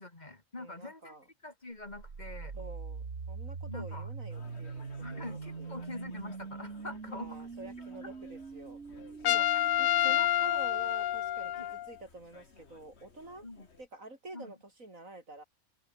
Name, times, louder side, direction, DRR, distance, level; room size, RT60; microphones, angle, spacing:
voice 1, 0.0-1.2 1.4-2.5 3.7-4.1 5.0-7.5 8.0-8.1 10.0-10.3 11.6-11.7 13.4-13.7 14.3-14.6, left 2 dB, 35° left, 2.6 m, -44 dB
voice 2, 0.6-1.2 2.5-5.8 7.1-8.8 9.2-9.5 9.8-13.5 13.8-15.4, right 2 dB, 90° right, 6.3 m, -48 dB
sound 1, 1.8-11.7, right 5 dB, 65° right, 2.3 m, -43 dB
sound 2, 4.3-13.9, left 4 dB, 55° left, 2.2 m, -58 dB
Trumpet, 9.2-11.9, left 14 dB, 85° left, 1.0 m, -28 dB
open air
omnidirectional pair, 1.4 m